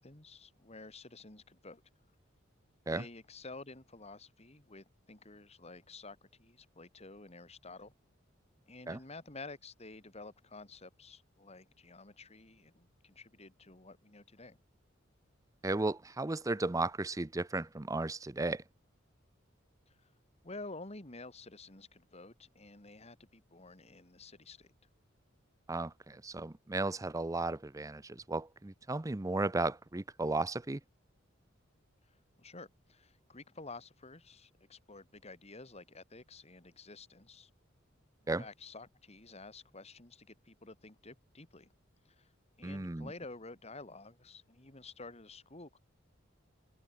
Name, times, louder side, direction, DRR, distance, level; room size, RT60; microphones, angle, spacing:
voice 1, 0.0-1.8 2.9-7.9 8.7-14.6 19.9-20.1 20.4-24.7 32.4-37.5 38.4-41.7 42.2-42.3 42.6-45.8, left 3 dB, 35° left, 2.5 m, -51 dB
voice 2, 15.6-18.6 25.7-30.8 38.3-38.5 42.6-43.1, right 2 dB, 15° right, 0.6 m, -35 dB
open air
head